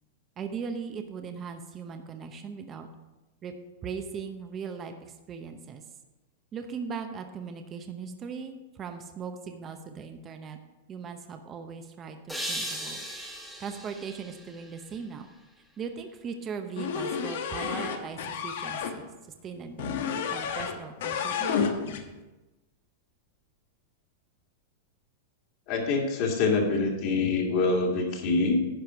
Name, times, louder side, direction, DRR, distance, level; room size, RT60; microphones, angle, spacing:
voice 1, 0.4-2.9 3.4-3.5 3.8-5.8 6.5-10.6 10.9-13.0 13.6-15.3 15.8-19.1 19.4-21.7, right 6 dB, 20° right, 6 dB, 0.7 m, -39 dB
sound 1, 12.3-15.4, equal, ahead, 1.3 m, -38 dB
sound 2, 16.8-18.9 19.8-20.8 21.0-22.0, left 7 dB, 70° left, 1.2 m, -30 dB
voice 2, 25.7-28.6, left 3 dB, 45° left, 0 dB, 2.2 m, -25 dB
10.5 x 5.1 x 6.2 m, 1.1 s
supercardioid pair, 155°, 0 cm